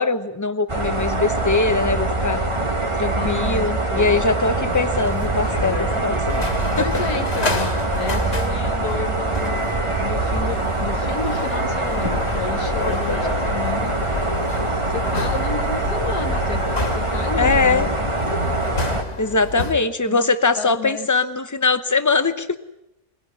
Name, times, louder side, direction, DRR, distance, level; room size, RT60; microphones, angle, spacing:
voice 1, 0.0-2.4 3.0-6.5 17.4-17.9 19.2-22.6, left 4 dB, 15° left, 11 dB, 0.7 m, -21 dB
sound 1, 0.7-19.0, right 2 dB, 20° right, 1.5 m, -23 dB
voice 2, 3.2-4.2 6.2-6.3 6.7-14.4 14.7-17.9 20.1-20.3 20.6-21.1, left 8 dB, 80° left, 6 dB, 1.6 m, -32 dB
sound 2, 4.2-19.7, left 2 dB, 40° left, 2.4 m, -30 dB
22.0 x 16.5 x 9.9 m, 0.87 s
omnidirectional pair, 1.7 m